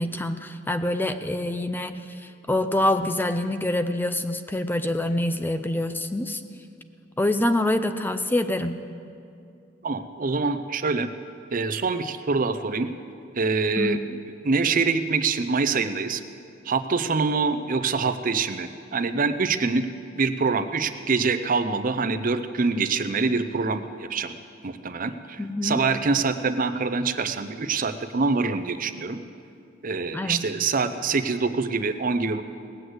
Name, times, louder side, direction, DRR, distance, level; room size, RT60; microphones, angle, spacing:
voice 1, 0.0-6.4 7.2-8.8 13.8-14.2 25.4-25.8 30.1-30.4, left 1 dB, 10° left, 9 dB, 0.4 m, -26 dB
voice 2, 9.8-11.1 11.5-12.9 13.4-14.0 14.4-16.2 16.6-19.9 20.2-24.3 24.6-29.2 29.8-32.4, right 4 dB, 45° right, 11 dB, 0.6 m, -25 dB
19.0 x 7.9 x 8.0 m, 2.4 s
head